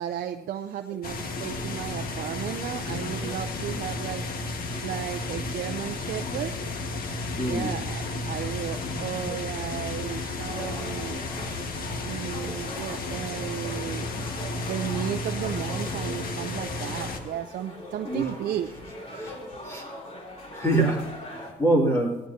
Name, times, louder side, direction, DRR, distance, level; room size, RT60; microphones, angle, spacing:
voice 1, 0.0-4.2 4.8-6.5 7.5-11.2 12.0-14.1 14.5-18.7, right 10 dB, 60° right, 6 dB, 0.7 m, -34 dB
sound 1, 1.0-17.2, left 3 dB, 60° left, 1.7 m, -33 dB
voice 2, 7.4-7.7 10.0-10.8 11.3-11.7 13.4-13.6 18.0-18.2 19.1-19.3 19.6-19.9 20.5-22.2, right 1 dB, 15° left, -1 dB, 2.6 m, -27 dB
sound 2, 10.5-21.5, left 1 dB, 35° left, 3.3 m, -41 dB
18.0 x 15.0 x 2.8 m, 1.1 s
cardioid pair, 110°, 17 cm